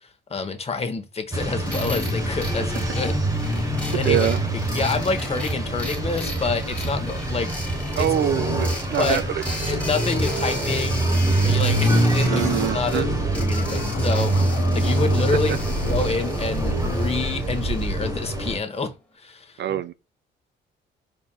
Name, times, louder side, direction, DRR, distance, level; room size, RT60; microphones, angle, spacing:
voice 1, 0.3-3.2 3.5-4.3 4.7-7.5 8.0-8.1 9.0-9.2 9.7-11.1 11.4-12.5 12.7-13.0 13.3-15.6 15.9-18.9 19.2-19.6, left 4 dB, 30° left, 1.0 m, -27 dB
sound 1, 1.3-18.6, right 1 dB, 15° right, 1.2 m, -24 dB
sound 2, 1.7-18.6, left 1 dB, 5° left, 1.5 m, -37 dB
voice 2, 4.0-4.4 7.9-9.4 12.2-13.1 19.6-19.9, right 11 dB, 60° right, 0.5 m, -24 dB
Scratching (performance technique), 13.6-16.2, left 7 dB, 90° left, 0.6 m, -35 dB
4.3 x 3.3 x 2.3 m
cardioid pair, 90°, 20 cm